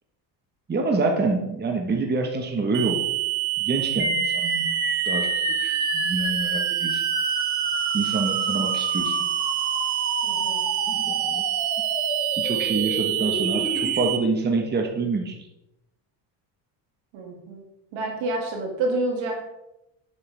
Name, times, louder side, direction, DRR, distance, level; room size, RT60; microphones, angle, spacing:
voice 1, 0.7-3.0 3.6-4.8 5.1-7.0 7.9-9.2 10.9-11.4 12.4-15.5, right 3 dB, 20° right, 3 dB, 1.2 m, -27 dB
sound 1, 2.7-14.2, right 21 dB, 40° right, 1.2 m, -26 dB
sound 2, 4.0-14.0, left 2 dB, 15° left, 1.9 m, -30 dB
voice 2, 10.2-10.6 17.1-17.6 17.9-19.5, right 2 dB, 70° right, 0 dB, 2.9 m, -28 dB
8.9 x 7.8 x 3.4 m, 0.89 s
supercardioid pair, 90°, 49 cm